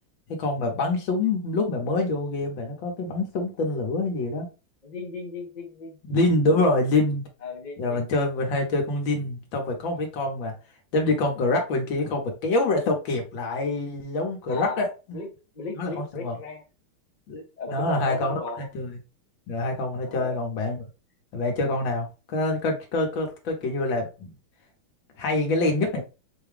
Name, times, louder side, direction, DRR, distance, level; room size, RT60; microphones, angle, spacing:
voice 1, 0.3-4.5 6.1-7.2 7.8-10.5 10.9-15.2 15.8-16.4 17.3-19.0 19.5-20.8 21.3-24.3 25.2-26.0, left 2 dB, 70° left, 1.9 m, -26 dB
voice 2, 4.8-6.0 6.5-6.6 7.4-8.0 14.5-15.3 15.5-16.6 17.6-18.7 20.0-20.4, left 4 dB, 40° left, 0.6 m, -36 dB
5.5 x 2.3 x 3.4 m
omnidirectional pair, 2.3 m